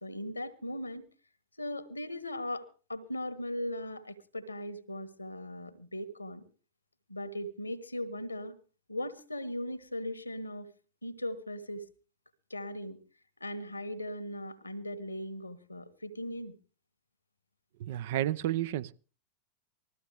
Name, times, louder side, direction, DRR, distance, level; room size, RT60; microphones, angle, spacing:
voice 1, 0.0-1.1 1.6-6.4 7.1-8.5 8.9-10.7 11.0-11.9 12.5-13.0 13.4-16.5, left 1 dB, 80° left, 1.4 m, -38 dB
voice 2, 17.8-18.9, right 13 dB, 55° right, 0.6 m, -31 dB
20.5 x 14.0 x 3.5 m
figure-of-eight pair, 90°, 0 cm